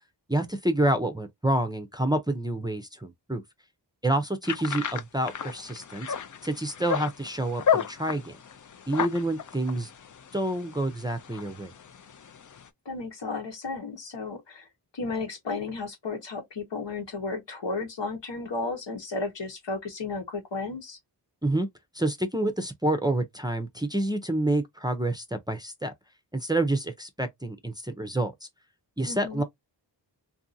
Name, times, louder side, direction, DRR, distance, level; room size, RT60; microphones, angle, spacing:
voice 1, 0.3-3.4 4.0-6.1 6.4-8.4 8.9-9.9 10.3-11.7 21.4-21.7 21.9-25.9 26.3-28.5 29.0-29.4, right 1 dB, 10° right, 0.5 m, -28 dB
sound 1, 4.4-12.7, left 7 dB, 45° left, 0.5 m, -33 dB
voice 2, 12.8-14.7 14.9-21.0 29.0-29.4, left 3 dB, 75° left, 1.1 m, -33 dB
2.6 x 2.6 x 2.6 m
cardioid pair, 55°, 44 cm